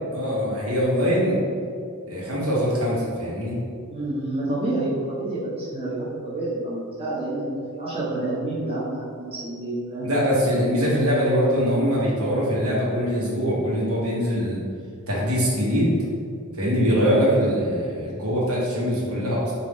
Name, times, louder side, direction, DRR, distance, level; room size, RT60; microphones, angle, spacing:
voice 1, 0.1-1.4 2.1-3.6 10.0-14.6 15.1-16.0 16.5-19.5, equal, 75° right, -6 dB, 1.2 m, -22 dB
voice 2, 3.9-10.1, right 2 dB, 25° right, -8 dB, 0.9 m, -28 dB
4.6 x 2.6 x 3.5 m, 2.4 s
head